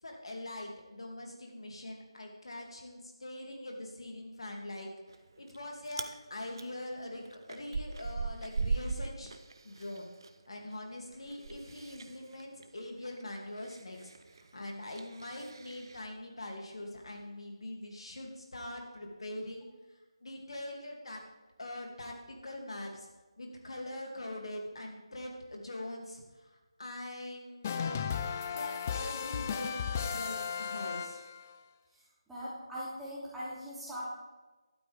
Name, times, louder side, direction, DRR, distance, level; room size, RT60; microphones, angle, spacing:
voice 1, 0.0-4.9 5.4-9.3 9.6-10.1 10.5-21.2 21.6-23.1 23.4-28.0 28.5-31.2, left 1 dB, 70° left, 1 dB, 2.8 m, -43 dB
Chewing mastication, 5.1-5.6 5.8-6.1 6.5-10.3 10.6-16.0, right 4 dB, 50° right, 0.7 m, -39 dB
sound 1, 27.6-31.5, left 7 dB, 25° left, 0.5 m, -35 dB
voice 2, 32.3-34.0, equal, 5° right, -10 dB, 2.9 m, -40 dB
12.5 x 12.0 x 3.6 m, 1.2 s
figure-of-eight pair, 165°, 3 cm